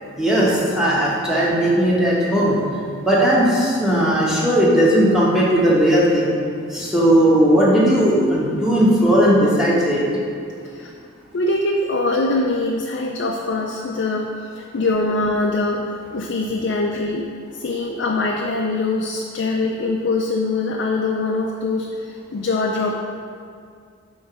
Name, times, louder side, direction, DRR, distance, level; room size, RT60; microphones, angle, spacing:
voice 1, 0.2-2.6 3.0-6.3 6.7-10.0, equal, 5° right, -6 dB, 1.0 m, -17 dB
voice 2, 11.3-23.0, left 2 dB, 55° left, 0 dB, 0.4 m, -23 dB
5.5 x 3.9 x 5.5 m, 2.2 s
head